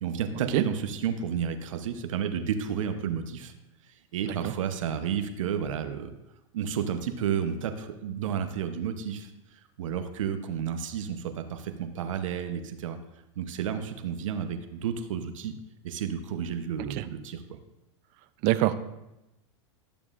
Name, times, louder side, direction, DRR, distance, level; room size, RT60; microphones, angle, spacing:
voice 1, 0.0-3.5 4.1-6.1 6.5-13.0 13.4-15.5 15.8-17.6, right 8 dB, 80° right, 8 dB, 0.8 m, -31 dB
voice 2, 18.4-18.7, right 16 dB, 45° right, 13 dB, 0.5 m, -25 dB
12.0 x 7.1 x 2.5 m, 0.93 s
hypercardioid pair, 125°, 16 cm